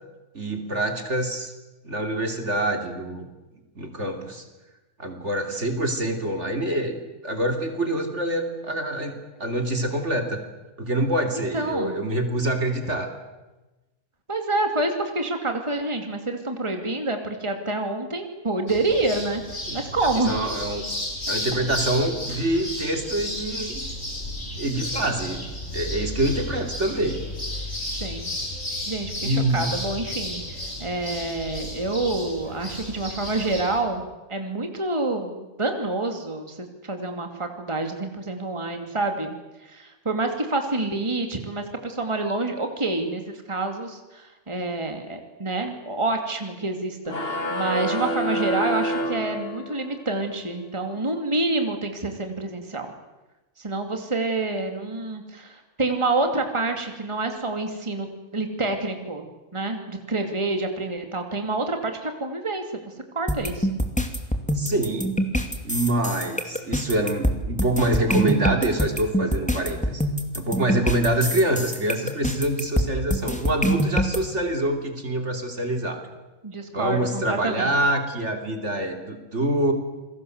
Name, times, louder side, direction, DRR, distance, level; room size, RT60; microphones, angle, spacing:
voice 1, 0.3-1.5 1.8-3.3 3.8-4.4 5.0-10.4 10.8-13.1 19.7-19.8 20.2-20.8 21.3-23.8 24.6-25.5 25.7-27.2 29.2-29.7 64.5-65.2 65.6-70.0 70.3-76.0 76.7-79.7, right 1 dB, 55° right, 5 dB, 3.3 m, -25 dB
voice 2, 11.4-12.0 14.3-19.4 19.7-20.4 28.0-28.3 28.9-39.4 39.6-52.9 53.6-58.1 58.3-63.8 76.4-77.7, right 2 dB, 20° right, 5 dB, 2.6 m, -28 dB
sound 1, 18.7-33.8, left 1 dB, 70° left, 6.6 m, -33 dB
sound 2, 47.1-50.0, equal, 45° left, 2.5 m, -27 dB
sound 3, 63.3-74.2, equal, 5° left, 2.5 m, -25 dB
28.5 x 21.5 x 8.0 m, 1.1 s
omnidirectional pair, 1.5 m